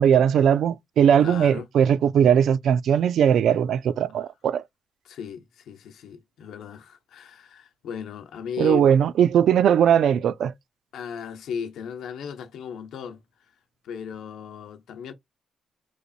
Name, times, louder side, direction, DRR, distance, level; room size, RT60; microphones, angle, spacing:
voice 1, 0.0-4.6 8.6-10.5, right 8 dB, 70° right, 0.3 m, -19 dB
voice 2, 1.2-1.7 5.0-8.9 10.9-13.2 13.8-15.1, left 7 dB, 85° left, 0.8 m, -36 dB
4.0 x 3.2 x 2.4 m
cardioid pair, 150°, 0 cm